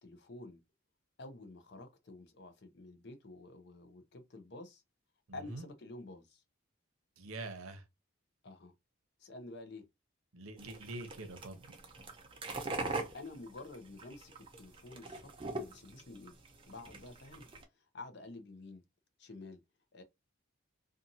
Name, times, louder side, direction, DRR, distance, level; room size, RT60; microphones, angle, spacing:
voice 1, 0.0-0.6 1.2-4.8 5.3-6.4 8.4-8.7 9.2-9.8 12.8-16.4 16.7-17.5 17.7-18.8 19.2-19.6 19.9-20.0, left 2 dB, 50° left, 0.6 m, -50 dB
voice 2, 5.3-5.7 7.2-7.8 10.3-11.8, right 2 dB, 85° right, 0.7 m, -45 dB
sound 1, 10.6-17.6, right 3 dB, 25° right, 0.4 m, -42 dB
2.6 x 2.5 x 2.7 m
head